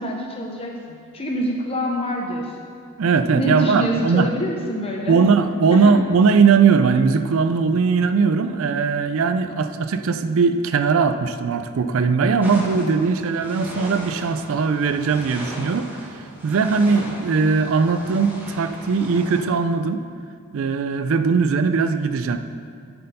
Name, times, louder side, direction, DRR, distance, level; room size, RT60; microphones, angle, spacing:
voice 1, 0.0-2.7 3.4-5.2 5.7-6.0, equal, 25° left, 0 dB, 0.7 m, -26 dB
voice 2, 3.0-4.3 5.1-20.0 20.5-22.4, right 5 dB, 65° right, 9 dB, 0.4 m, -19 dB
sound 1, 12.4-19.4, equal, 10° right, 1.1 m, -37 dB
10.0 x 4.5 x 5.4 m, 2.2 s
head